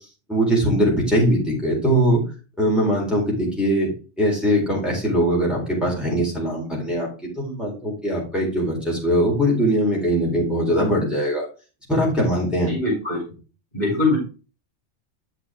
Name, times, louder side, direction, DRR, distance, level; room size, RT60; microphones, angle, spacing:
voice 1, 0.3-2.2 2.6-3.9 4.2-7.1 7.4-11.4 11.9-12.7, equal, ahead, -4 dB, 4.1 m, -21 dB
voice 2, 12.7-13.2 13.7-14.2, left 2 dB, 40° left, -4 dB, 3.5 m, -22 dB
9.1 x 6.0 x 3.6 m, 0.34 s
omnidirectional pair, 1.2 m